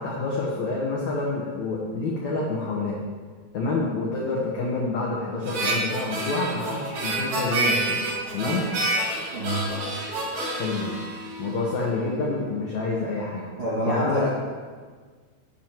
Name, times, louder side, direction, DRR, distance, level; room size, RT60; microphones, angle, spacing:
voice 1, 0.0-3.0 3.5-8.1 8.3-8.7 10.6-10.9 11.4-13.4 13.8-14.3, left 3 dB, 85° left, -3 dB, 1.6 m, -27 dB
Harmonica, 5.4-11.9, right 2 dB, 75° right, 6.0 m, -28 dB
voice 2, 9.3-9.7 13.6-14.3, equal, 40° right, -8 dB, 2.2 m, -27 dB
13.5 x 9.2 x 3.0 m, 1.5 s
omnidirectional pair, 5.1 m